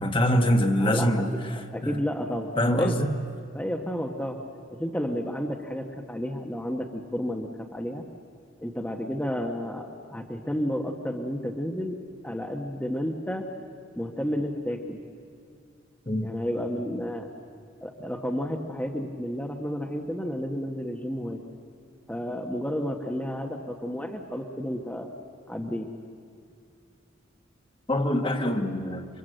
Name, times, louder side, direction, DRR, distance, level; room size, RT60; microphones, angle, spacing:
voice 1, 0.0-1.3 1.8-1.9 2.6-3.1 16.1-16.3 27.9-29.1, equal, 25° left, 5 dB, 1.4 m, -24 dB
voice 2, 0.8-1.2 1.5-3.0 3.5-4.4 4.7-8.0 8.6-12.0 12.2-13.5 13.9-15.0 16.2-17.3 17.8-21.4 22.1-25.1 25.5-25.9, equal, 5° left, 1 dB, 1.2 m, -31 dB
28.5 x 24.0 x 7.9 m, 2.3 s
head